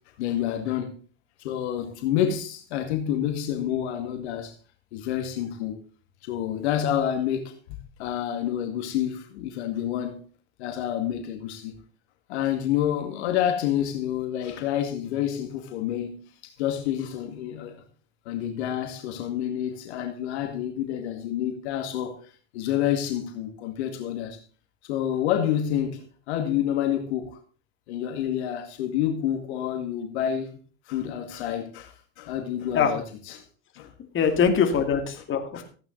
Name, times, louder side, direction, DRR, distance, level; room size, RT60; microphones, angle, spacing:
voice 1, 0.2-1.0 1.4-4.6 4.9-5.8 6.2-7.5 8.0-10.2 10.6-11.8 12.3-17.8 18.3-22.2 22.5-24.4 24.8-27.4 27.9-30.6 30.9-33.4 33.8-33.9 35.5-35.6, left 10 dB, 70° left, 2.1 m, -28 dB
voice 2, 34.1-35.6, left 6 dB, 35° left, 2.4 m, -22 dB
15.0 x 8.9 x 4.0 m
hypercardioid pair, 95°, 34 cm